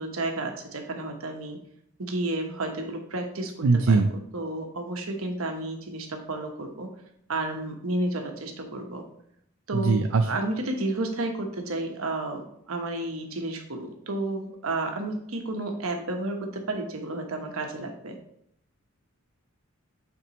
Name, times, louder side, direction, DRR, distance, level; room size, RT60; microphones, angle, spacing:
voice 1, 0.0-1.6 2.0-3.5 3.9-4.0 4.3-6.9 7.3-9.0 9.7-10.0 10.3-18.2, right 2 dB, 90° right, 3 dB, 1.2 m, -31 dB
voice 2, 3.6-4.1 9.7-10.3, right 3 dB, 75° right, 5 dB, 0.5 m, -21 dB
8.7 x 4.4 x 3.1 m, 0.70 s
head